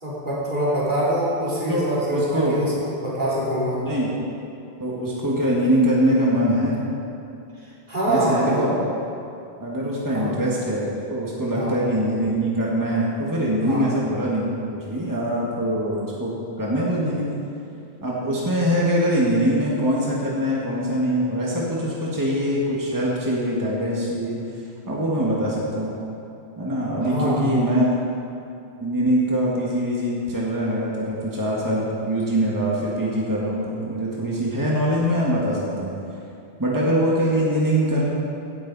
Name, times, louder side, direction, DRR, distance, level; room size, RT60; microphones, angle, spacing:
voice 1, 0.0-3.8 7.6-8.7 10.1-10.3 11.5-11.7 13.6-13.9 27.0-27.6, right 1 dB, 45° right, -7 dB, 3.9 m, -25 dB
voice 2, 1.7-2.7 3.8-4.2 4.8-6.8 8.1-8.8 9.6-17.3 18.0-24.4 24.9-25.9 26.6-27.9 28.8-35.9 36.6-38.1, equal, 15° right, -5 dB, 1.9 m, -23 dB
16.5 x 11.0 x 4.1 m, 2.7 s
omnidirectional pair, 1.2 m